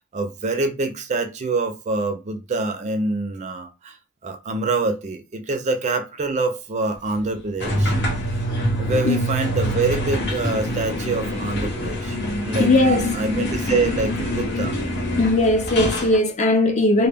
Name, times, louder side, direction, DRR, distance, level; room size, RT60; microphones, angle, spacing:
voice 1, 0.1-4.0 4.2-7.9 8.8-12.2 12.4-14.8, right 3 dB, 35° right, 0.4 m, -25 dB
sound 1, 7.6-16.2, equal, 50° left, 0.9 m, -25 dB
voice 2, 12.6-13.1 13.5-13.7 15.2-17.1, left 2 dB, 35° left, 0.4 m, -19 dB
2.1 x 2.0 x 3.3 m
head